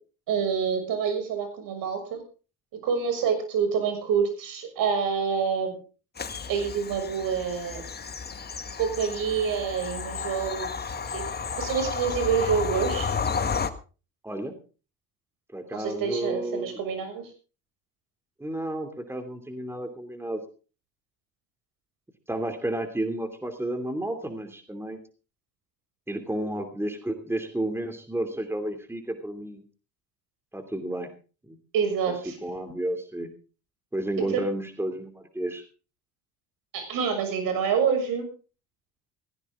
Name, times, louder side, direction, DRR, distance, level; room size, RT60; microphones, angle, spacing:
voice 1, 0.3-2.2 2.8-5.7 6.5-7.8 8.8-10.7 11.1-11.2 11.6-13.1 15.7-17.2 31.7-32.4 34.3-34.4 36.7-38.3, right 6 dB, 65° right, 6 dB, 6.5 m, -27 dB
Bird vocalization bird call bird song / Train, 6.2-13.7, left 5 dB, 25° left, 1.6 m, -32 dB
voice 2, 14.2-14.5 15.5-16.8 18.4-20.4 22.3-25.0 26.1-29.6 30.5-31.1 31.4-31.6 32.1-32.2 32.4-33.3 33.9-35.6, right 1 dB, 5° right, 7 dB, 2.8 m, -32 dB
16.5 x 16.5 x 3.7 m, 0.36 s
supercardioid pair, 75°, 36 cm